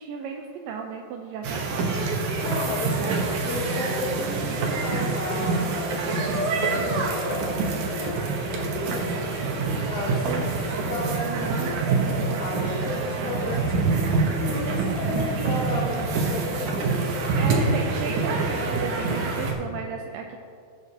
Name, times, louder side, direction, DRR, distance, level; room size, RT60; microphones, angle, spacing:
voice 1, 0.0-2.2 3.0-3.2 4.4-5.2 10.2-10.5 11.2-11.7 17.3-20.4, right 6 dB, 85° right, 2 dB, 2.1 m, -35 dB
sound 1, 1.4-19.5, right 3 dB, 65° right, 2.0 m, -26 dB
voice 2, 2.4-10.3 10.8-11.8 12.4-17.3, left 2 dB, 70° left, -7 dB, 4.3 m, -33 dB
17.5 x 7.0 x 2.8 m, 2.3 s
omnidirectional pair, 4.4 m